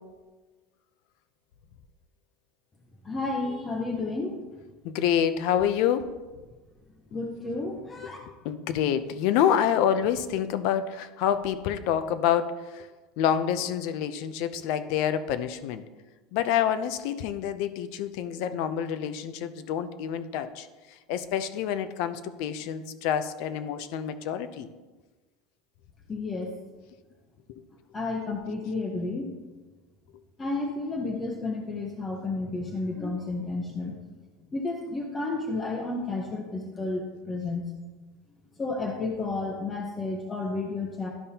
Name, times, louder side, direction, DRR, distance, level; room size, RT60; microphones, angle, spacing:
voice 1, 3.0-4.4 7.1-8.2 26.1-26.5 27.9-29.4 30.4-33.9 34.5-37.7 38.6-41.1, left 3 dB, 15° left, 0 dB, 0.8 m, -31 dB
voice 2, 4.8-6.2 8.4-12.9 13.2-15.8 16.3-24.7 27.5-27.6, left 9 dB, 60° left, 12 dB, 0.5 m, -27 dB
12.0 x 5.3 x 2.8 m, 1.3 s
supercardioid pair, 155°, 0 cm